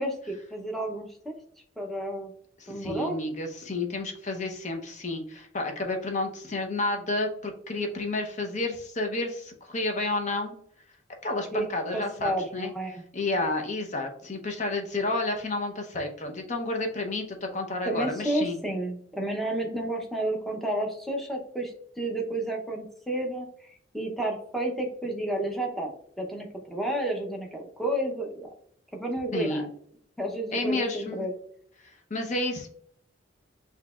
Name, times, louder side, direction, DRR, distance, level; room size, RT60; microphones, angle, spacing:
voice 1, 0.0-1.4 1.8-2.3 2.7-3.2 11.5-11.6 11.9-13.0 17.8-23.5 23.9-25.9 26.2-28.5 29.0-29.7 30.2-31.3, right 1 dB, ahead, 0 dB, 0.7 m, -31 dB
voice 2, 2.6-10.5 11.2-12.7 13.1-18.6 29.3-29.7 30.5-31.2 32.1-32.7, left 2 dB, 35° left, 3 dB, 0.7 m, -30 dB
6.3 x 2.9 x 2.3 m, 0.65 s
head